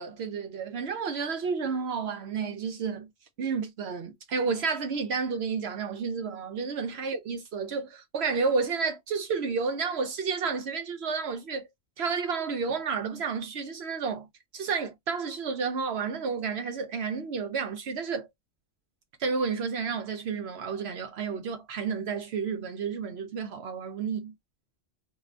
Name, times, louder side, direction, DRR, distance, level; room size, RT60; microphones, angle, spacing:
voice 1, 0.0-3.1 3.4-11.7 12.0-14.3 14.5-18.3 19.2-24.3, right 5 dB, 65° right, 0.8 m, -31 dB
2.5 x 2.4 x 3.2 m
omnidirectional pair, 1.2 m